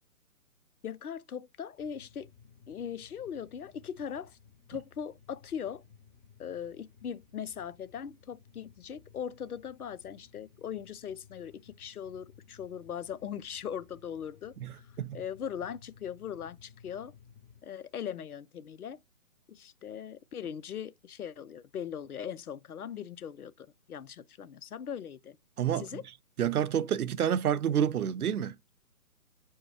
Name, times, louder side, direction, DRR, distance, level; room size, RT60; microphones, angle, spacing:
voice 1, 0.8-2.3 2.7-4.4 4.7-5.8 6.4-14.9 15.1-17.1 17.6-19.0 19.5-25.4 25.8-26.0, left 8 dB, 80° left, 0.6 m, -40 dB
sound 1, 1.8-17.6, left 6 dB, 15° left, 0.6 m, -58 dB
voice 2, 14.6-15.2 25.6-25.9 26.4-28.5, right 9 dB, 85° right, 0.5 m, -29 dB
4.5 x 2.2 x 4.5 m
figure-of-eight pair, 140°, 44 cm